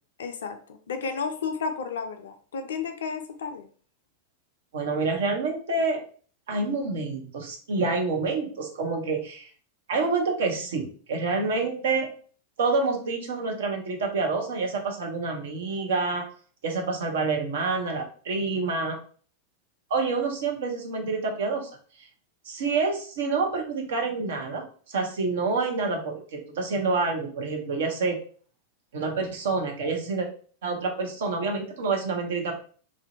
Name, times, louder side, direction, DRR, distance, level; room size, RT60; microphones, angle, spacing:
voice 1, 0.2-0.6 0.9-3.7, left 5 dB, 65° left, 7 dB, 0.3 m, -32 dB
voice 2, 4.7-6.0 6.5-9.5 9.9-12.1 12.6-16.2 16.6-19.0 19.9-21.7 22.5-28.2 28.9-30.3 30.6-32.6, right 4 dB, 60° right, 2 dB, 0.6 m, -27 dB
2.5 x 2.1 x 2.5 m, 0.43 s
figure-of-eight pair, 90°, 0 cm